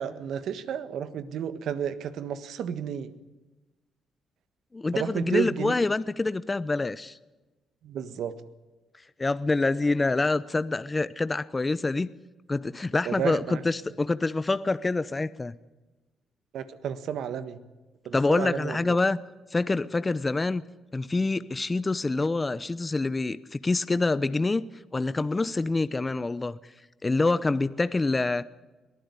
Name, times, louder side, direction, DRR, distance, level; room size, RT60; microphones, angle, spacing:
voice 1, 0.0-3.1 4.9-5.7 7.8-8.3 13.1-13.6 16.5-17.6 18.1-19.0, right 8 dB, 70° right, 13 dB, 1.6 m, -32 dB
voice 2, 4.7-7.2 9.2-12.1 12.5-15.5 18.1-19.2 19.5-20.6 20.9-24.6 24.9-26.6 27.0-28.4, left 3 dB, 20° left, 16 dB, 0.8 m, -26 dB
22.5 x 14.5 x 9.8 m, 1.1 s
cardioid pair, 90°, 0 cm